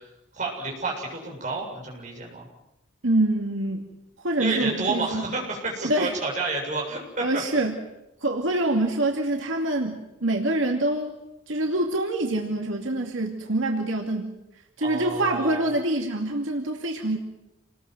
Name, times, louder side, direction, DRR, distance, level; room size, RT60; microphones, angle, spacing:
voice 1, 0.3-2.5 4.4-7.2 14.8-15.7, right 3 dB, 35° right, 0 dB, 7.4 m, -30 dB
voice 2, 3.0-3.9 4.2-5.2 5.8-6.2 7.2-7.8 8.2-11.2 11.5-14.3 14.8-17.2, right 1 dB, 80° right, 2 dB, 2.5 m, -25 dB
28.0 x 20.0 x 7.9 m, 0.90 s
head